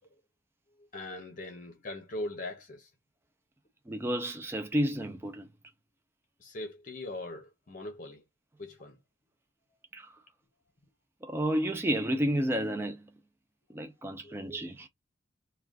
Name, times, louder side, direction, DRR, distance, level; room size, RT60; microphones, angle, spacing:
voice 1, 0.8-2.9 6.4-8.2 8.6-9.0 14.2-14.4, left 2 dB, 40° left, 0.6 m, -41 dB
voice 2, 3.9-5.5 9.9-10.1 11.2-13.0 13.7-14.9, equal, 10° right, 0.3 m, -31 dB
2.4 x 2.2 x 3.3 m
head